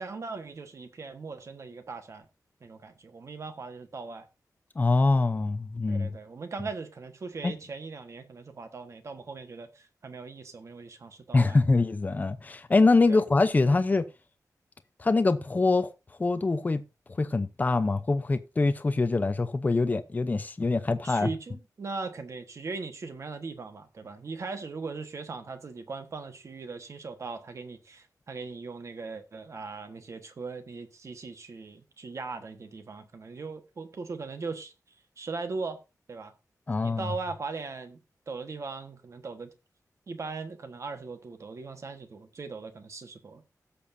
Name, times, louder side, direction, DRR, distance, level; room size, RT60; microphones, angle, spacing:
voice 1, 0.0-2.3 2.6-4.3 5.9-11.6 13.1-13.2 21.0-34.7 35.2-35.8 36.1-36.3 36.8-38.0 38.3-39.5 40.1-43.5, right 4 dB, 50° right, 1.4 m, -39 dB
voice 2, 4.8-6.1 7.4-7.5 11.3-14.0 15.0-15.9 16.2-16.8 17.2-21.3 36.7-37.1, left 3 dB, 25° left, 0.6 m, -24 dB
16.5 x 7.0 x 2.7 m
wide cardioid pair, 165°, 7 cm